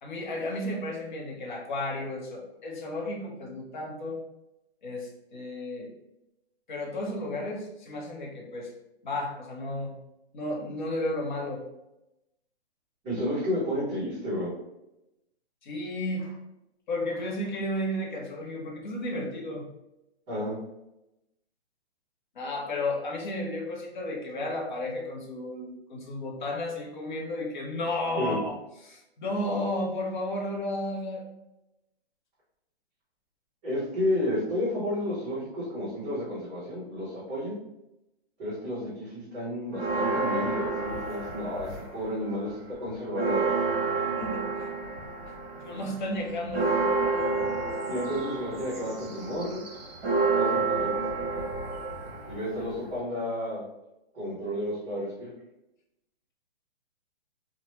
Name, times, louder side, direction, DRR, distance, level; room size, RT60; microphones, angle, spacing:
voice 1, 0.0-4.2 4.8-5.9 6.7-8.7 9.0-10.0 10.3-11.6 15.6-16.4 16.9-19.7 22.3-28.5 28.8-31.2 44.2-44.7 45.3-45.4 45.6-46.9, left 1 dB, 45° left, -1 dB, 0.8 m, -33 dB
voice 2, 13.0-14.5 20.3-20.6 28.1-28.4 33.6-37.5 38.4-43.5 47.9-49.6 50.3-50.9 52.3-53.6 54.1-55.3, left 1 dB, 15° right, -15 dB, 1.0 m, -31 dB
sound 1, 39.7-42.1 42.5-53.0, right 3 dB, 60° right, 1.0 m, -29 dB
2.9 x 2.1 x 3.0 m, 0.91 s
hypercardioid pair, 165°, 33 cm